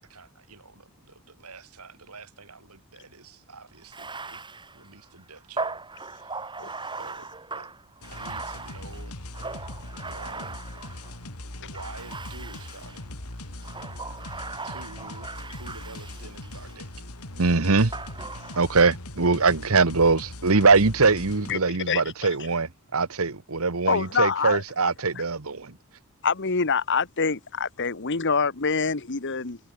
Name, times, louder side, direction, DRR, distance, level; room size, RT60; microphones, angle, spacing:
voice 1, 0.0-4.5 4.7-6.5 7.0-7.7 8.1-9.3 10.0-10.7 11.6-13.2 14.4-17.1 20.2-20.3, right 3 dB, 90° right, 7.1 m, -48 dB
Bathtub (filling or washing), 3.8-11.2 11.7-13.0 13.6-16.8 17.9-18.9, right 3 dB, 20° right, 7.3 m, -38 dB
sound 1, 8.0-21.5, left 1 dB, 80° left, 4.0 m, -40 dB
voice 2, 17.4-17.9 18.6-25.7, right 4 dB, 70° right, 1.3 m, -22 dB
voice 3, 21.9-22.3 23.9-24.6 25.1-25.2 26.2-29.6, left 5 dB, 55° left, 1.4 m, -25 dB
head